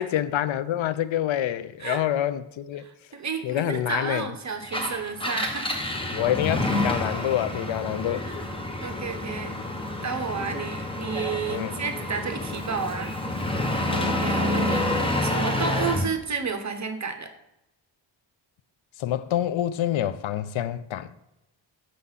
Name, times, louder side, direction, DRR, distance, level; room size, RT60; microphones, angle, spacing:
voice 1, 0.0-2.8 3.4-4.3 6.1-8.3 11.5-11.7 13.9-14.2 19.0-21.1, left 11 dB, 80° left, 0.5 m, -27 dB
voice 2, 2.8-5.8 8.2-8.3 8.8-9.6 10.0-13.1 14.0-17.3, right 5 dB, 35° right, 0.9 m, -31 dB
Engine, 4.6-16.1, left 1 dB, 10° left, 0.8 m, -28 dB
6.9 x 3.6 x 5.6 m
wide cardioid pair, 110°, 47 cm